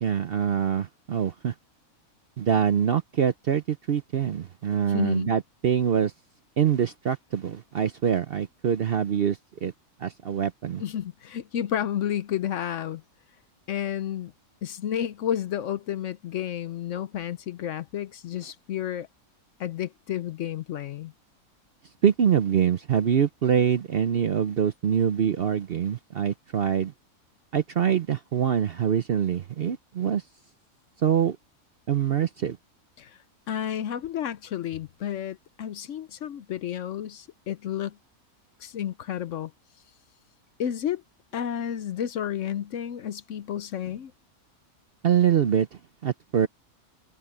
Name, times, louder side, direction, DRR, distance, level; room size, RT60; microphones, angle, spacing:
voice 1, 0.0-1.5 2.4-6.1 6.6-9.7 10.0-10.8 22.0-26.9 27.5-30.2 31.0-31.4 31.9-32.6 45.0-45.7 46.0-46.5, right 8 dB, 55° right, 0.7 m, -24 dB
voice 2, 4.9-5.3 10.8-13.0 13.7-14.3 14.6-19.1 19.6-21.1 33.0-33.2 33.5-38.0 38.6-39.5 40.6-41.0 41.3-44.1, left 10 dB, 65° left, 0.9 m, -31 dB
omnidirectional pair, 1.6 m